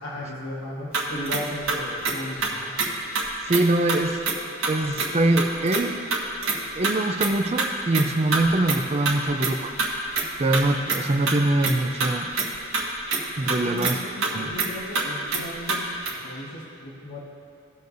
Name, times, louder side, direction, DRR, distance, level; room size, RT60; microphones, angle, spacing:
voice 1, 0.0-2.7 13.6-15.9 16.2-17.2, left 1 dB, 70° left, -4 dB, 1.5 m, -35 dB
sound 1, 0.9-2.5 2.8-2.9 3.2-3.3 3.5-3.6 3.9-4.0 4.3-4.4 4.6-5.1 5.3-5.8 6.1-6.6 6.8-6.9 7.2-7.7 7.9-8.0 8.3-8.4 8.7-8.8 9.1-9.2 9.4-9.9 10.1-10.3 10.5-11.4 11.6-11.7 12.0-12.9 13.1-13.2 13.5-13.9 14.2-14.3 14.6-14.7 15.0-15.1 15.3-15.4 15.7-15.8 16.1-16.2, right 4 dB, 75° right, 1.4 m, -25 dB
voice 2, 3.5-4.2 4.7-6.0 6.7-9.7 10.4-12.3 13.4-14.0 14.3-14.5, right 2 dB, 30° right, 5 dB, 0.4 m, -23 dB
16.5 x 6.6 x 2.6 m, 2.8 s
head